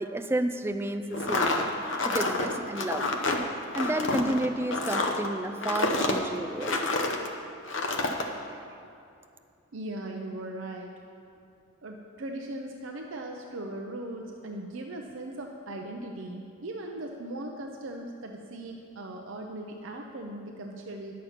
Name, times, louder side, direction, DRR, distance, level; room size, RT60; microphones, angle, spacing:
voice 1, 0.0-1.5 2.0-3.1 3.5-6.8 8.5-8.6, right 1 dB, 10° right, 8 dB, 0.3 m, -31 dB
sound 1, 1.1-7.3 7.7-8.3, left 2 dB, 60° left, 0.8 m, -28 dB
voice 2, 9.7-10.9 11.8-21.1, right 1 dB, 65° right, 2 dB, 0.6 m, -38 dB
10.5 x 7.4 x 5.7 m, 2.5 s
head